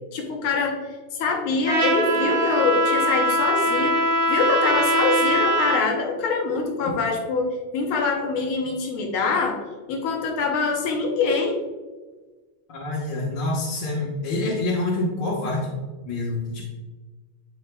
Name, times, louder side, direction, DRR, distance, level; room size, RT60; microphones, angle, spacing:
voice 1, 0.1-0.8 1.1-9.6 9.9-11.6, left 4 dB, 85° left, 2 dB, 1.8 m, -24 dB
Trumpet, 1.7-5.9, equal, 45° right, 0.8 m, -22 dB
voice 2, 12.7-15.7 16.0-16.6, left 2 dB, 60° left, -6 dB, 1.8 m, -26 dB
9.8 x 4.6 x 2.2 m, 1.3 s
omnidirectional pair, 2.3 m